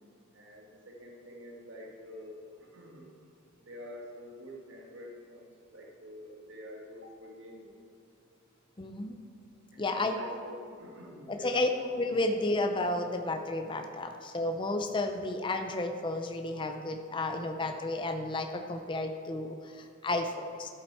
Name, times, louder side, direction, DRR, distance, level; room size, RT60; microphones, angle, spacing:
voice 1, 0.3-3.3 3.6-7.7 9.7-12.1, equal, 65° right, -1 dB, 1.9 m, -46 dB
voice 2, 8.8-9.2 9.8-10.2 11.3-11.7 12.0-20.7, left 2 dB, 25° left, 5 dB, 0.5 m, -32 dB
12.0 x 7.6 x 4.4 m, 2.4 s
head